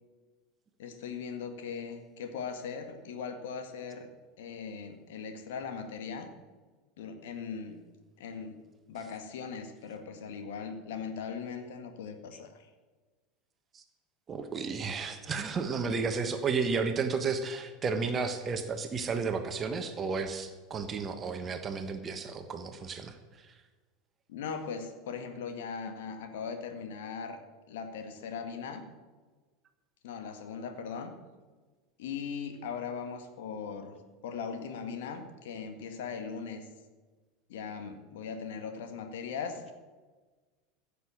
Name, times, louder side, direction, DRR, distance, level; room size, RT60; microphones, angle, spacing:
voice 1, 0.8-4.1 4.4-6.3 7.0-7.8 8.2-8.6 8.9-12.7 24.3-27.4 27.7-28.9 30.0-31.1 32.0-34.0 34.2-36.7 37.5-39.7, left 6 dB, 65° left, 7 dB, 1.7 m, -39 dB
voice 2, 14.3-23.5, right 5 dB, 30° right, 7 dB, 1.2 m, -33 dB
15.5 x 6.9 x 7.4 m, 1.3 s
figure-of-eight pair, 80°, 0 cm